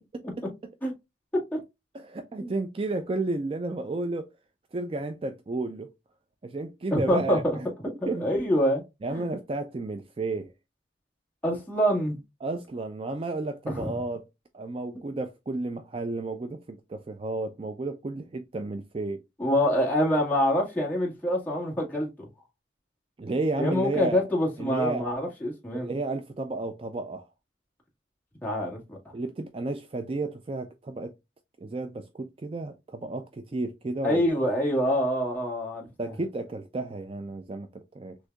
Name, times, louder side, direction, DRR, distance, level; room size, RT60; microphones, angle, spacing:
voice 1, 0.1-0.7 1.9-4.3 4.7-5.9 6.4-8.3 9.0-10.5 12.4-14.3 14.5-19.2 23.2-24.3 24.6-25.1 25.7-27.3 29.1-31.1 31.6-34.2 36.0-38.2, right 2 dB, 30° right, 0.3 m, -32 dB
voice 2, 6.9-7.4 8.0-8.8 9.1-9.2 11.4-12.2 19.4-22.1 23.6-25.9 28.4-29.0 34.0-35.9, equal, 10° left, 1.6 m, -25 dB
6.2 x 2.6 x 2.3 m
head